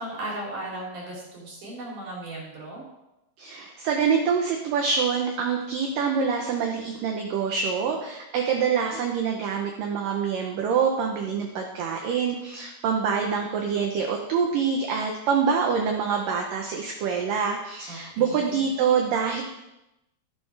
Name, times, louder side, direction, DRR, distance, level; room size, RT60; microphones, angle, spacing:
voice 1, 0.0-2.8 17.9-18.7, right 1 dB, 55° right, -5 dB, 4.5 m, -36 dB
voice 2, 3.4-19.4, right 6 dB, 70° right, 2 dB, 2.2 m, -25 dB
12.5 x 11.0 x 3.4 m, 0.92 s
omnidirectional pair, 4.7 m